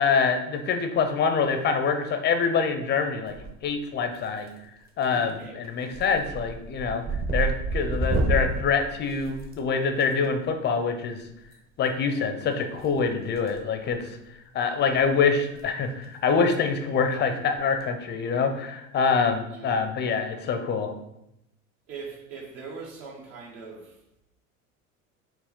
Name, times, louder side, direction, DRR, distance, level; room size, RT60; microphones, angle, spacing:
voice 1, 0.0-3.3 3.6-4.5 5.0-7.0 7.3-11.2 11.8-14.2 14.5-20.9, left 5 dB, 25° left, 0.4 m, -25 dB
sound 1, 3.3-3.8 4.1-4.7 5.0-5.3 5.6-10.0 11.4-11.5 12.8-13.6 13.9-14.1 14.6-14.7 15.0-15.1 15.4-15.6 15.9-16.0 17.5-17.8, right 2 dB, 25° right, 0.6 m, -30 dB
voice 2, 5.1-5.6 19.5-19.9 20.4-20.6 21.9-23.9, right 4 dB, 65° right, 1.2 m, -41 dB
4.5 x 2.0 x 3.6 m
hypercardioid pair, 80°, 42 cm